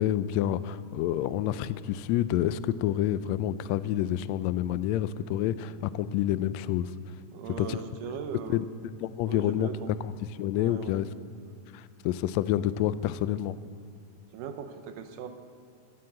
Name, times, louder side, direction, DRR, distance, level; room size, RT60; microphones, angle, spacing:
voice 1, 0.0-6.9 7.6-7.8 8.5-8.6 9.0-11.1 11.7-13.6, left 12 dB, 85° left, 15 dB, 1.5 m, -28 dB
voice 2, 7.3-8.6 9.3-9.9 10.6-11.0 14.3-15.3, right 8 dB, 90° right, 7 dB, 2.5 m, -39 dB
16.5 x 9.4 x 7.8 m, 2.3 s
omnidirectional pair, 3.7 m